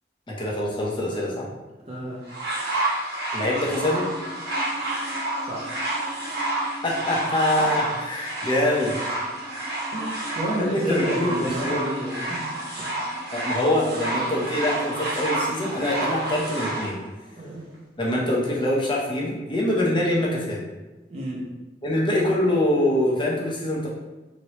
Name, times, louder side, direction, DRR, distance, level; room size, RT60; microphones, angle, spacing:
voice 1, 0.3-1.5 3.3-4.1 6.8-9.0 10.6-11.9 13.3-17.0 18.0-20.6 21.8-23.9, left 1 dB, 25° left, -4 dB, 0.7 m, -24 dB
voice 2, 1.9-2.2 5.4-5.9 9.9-12.5 12.8-13.0 17.4-17.6 21.1-21.5, right 1 dB, 35° right, -5 dB, 0.8 m, -31 dB
sound 1, 2.3-16.9 17.7-17.8, right 2 dB, 65° right, 1.2 m, -29 dB
3.1 x 2.9 x 2.9 m, 1.1 s
head